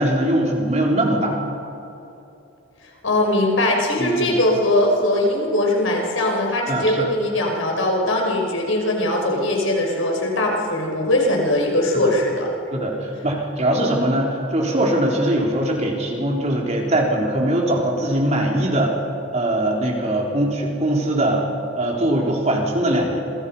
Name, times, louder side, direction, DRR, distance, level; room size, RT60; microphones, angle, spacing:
voice 1, 0.0-1.4 4.0-4.4 6.7-7.1 11.9-12.1 12.7-19.0 19.3-21.4 21.7-23.2, right 1 dB, 35° right, 0 dB, 3.9 m, -21 dB
voice 2, 3.0-12.5, left 1 dB, 75° left, 0 dB, 5.4 m, -20 dB
27.0 x 24.5 x 5.6 m, 2.9 s
head